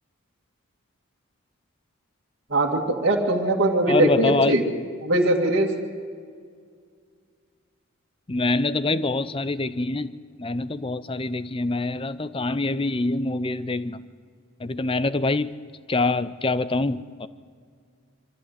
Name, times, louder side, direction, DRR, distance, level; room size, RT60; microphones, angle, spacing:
voice 1, 2.5-4.6 5.0-5.7, right 1 dB, 50° right, -2 dB, 2.2 m, -21 dB
voice 2, 3.9-4.6 8.3-10.1 10.4-14.0 14.6-15.5 15.9-17.3, left 2 dB, 25° left, 16 dB, 0.6 m, -25 dB
23.5 x 14.5 x 8.0 m, 2.1 s
head